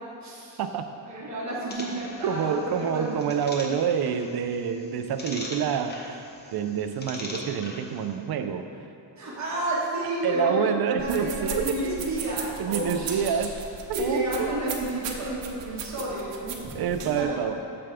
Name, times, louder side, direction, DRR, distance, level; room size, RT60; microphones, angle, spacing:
voice 1, 0.0-0.6 1.1-3.1 9.2-13.5 14.0-16.6 16.9-17.4, right 1 dB, 40° right, -7 dB, 1.8 m, -31 dB
sound 1, 1.7-8.2, left 1 dB, 25° left, 0.8 m, -42 dB
voice 2, 2.2-8.7 10.2-11.8 12.6-13.5 13.9-14.5 16.7-17.6, right 7 dB, 60° right, 8 dB, 0.5 m, -27 dB
sound 2, 11.0-17.2, right 6 dB, 85° right, 0.9 m, -37 dB
8.4 x 7.0 x 3.5 m, 2.7 s
wide cardioid pair, 165°, 43 cm